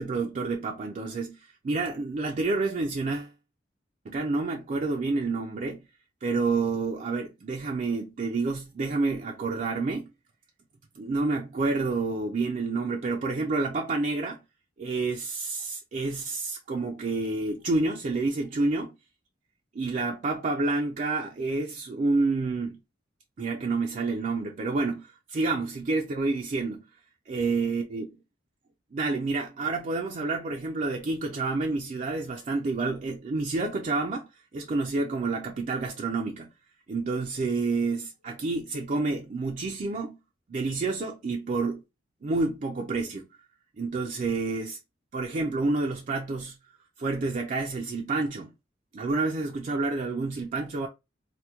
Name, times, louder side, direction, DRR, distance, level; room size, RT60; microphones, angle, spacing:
voice 1, 0.0-3.3 4.1-5.8 6.2-10.1 11.0-14.4 14.8-18.9 19.7-22.8 23.4-26.8 27.3-28.1 28.9-34.3 34.5-36.5 36.9-40.2 40.5-41.8 42.2-43.2 43.8-44.8 45.1-46.6 47.0-48.5 48.9-50.9, right 3 dB, 45° right, 0.4 m, -29 dB
2.9 x 2.1 x 3.5 m
head